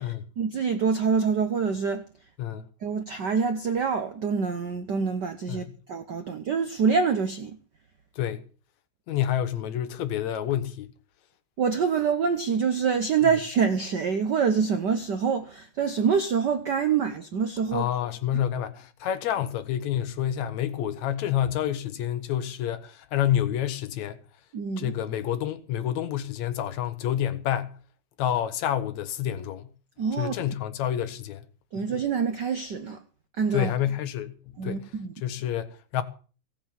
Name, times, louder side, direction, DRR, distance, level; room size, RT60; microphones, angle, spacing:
voice 1, 0.0-2.0 2.8-7.6 11.6-17.9 18.3-18.4 24.5-24.9 30.0-30.3 31.7-33.0 33.4-33.7 34.6-35.1, right 6 dB, 80° right, 0.9 m, -26 dB
voice 2, 9.1-10.9 17.7-24.2 24.8-27.7 28.2-29.7 30.2-31.4 33.5-34.3 34.6-34.9 35.2-36.0, left 10 dB, 75° left, 2.3 m, -28 dB
16.5 x 7.9 x 7.2 m
omnidirectional pair, 3.3 m